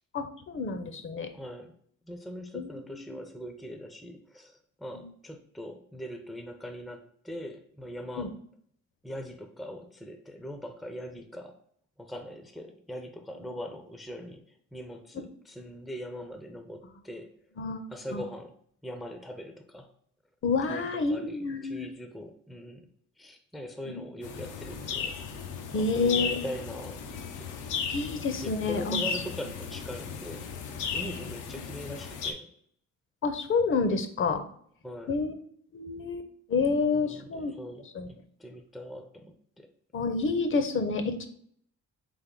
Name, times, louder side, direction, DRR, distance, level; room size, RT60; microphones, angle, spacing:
voice 1, 0.1-1.3 2.5-3.2 4.9-5.1 8.2-8.3 17.6-17.9 18.1-18.2 20.4-21.9 23.9-24.0 25.7-26.4 27.9-29.0 33.2-34.4 35.1-35.3 35.7-37.5 37.9-38.1 39.9-41.3, left 4 dB, 45° left, 8 dB, 0.6 m, -29 dB
voice 2, 1.3-1.7 2.0-8.3 9.0-11.6 12.0-17.3 17.9-18.6 18.8-19.9 20.7-22.8 23.2-25.2 25.7-27.5 28.3-30.5 30.9-32.5 34.8-35.2 36.9-39.7, equal, ahead, 5 dB, 0.5 m, -41 dB
sound 1, 24.2-32.3, left 6 dB, 90° left, 0.6 m, -35 dB
3.8 x 3.5 x 3.7 m, 0.63 s
cardioid pair, 90°, 30 cm